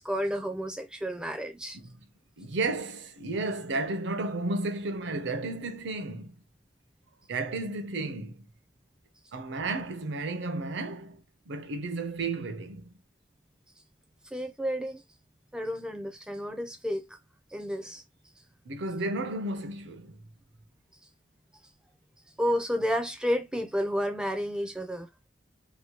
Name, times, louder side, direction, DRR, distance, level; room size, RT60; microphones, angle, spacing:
voice 1, 0.0-1.8 14.3-15.0 15.5-17.2 17.5-18.0 22.4-25.1, equal, 5° right, 0.4 m, -31 dB
voice 2, 2.4-6.4 7.3-8.5 9.3-12.9 18.7-20.2, right 2 dB, 65° right, 0.5 m, -33 dB
2.8 x 2.2 x 2.8 m
head